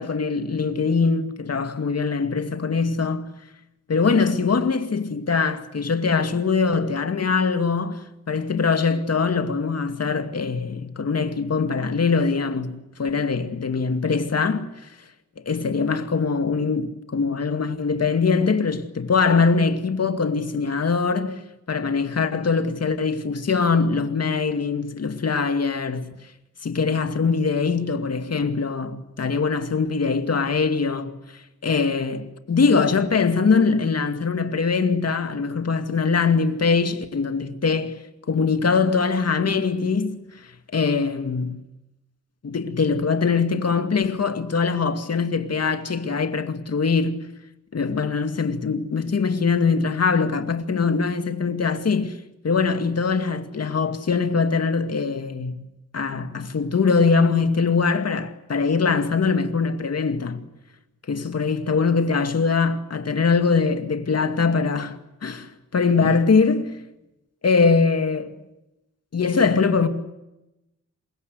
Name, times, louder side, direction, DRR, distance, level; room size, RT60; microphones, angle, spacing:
voice 1, 0.0-3.3 3.9-14.9 15.5-21.4 21.7-26.1 26.6-31.2 31.6-38.0 38.3-40.3 40.7-41.6 42.4-47.3 47.7-55.6 55.9-60.5 61.1-66.8 67.4-68.4 69.1-69.9, left 5 dB, 55° left, 2.3 m, -22 dB
28.0 x 24.0 x 8.2 m
wide cardioid pair, 95°, 30 cm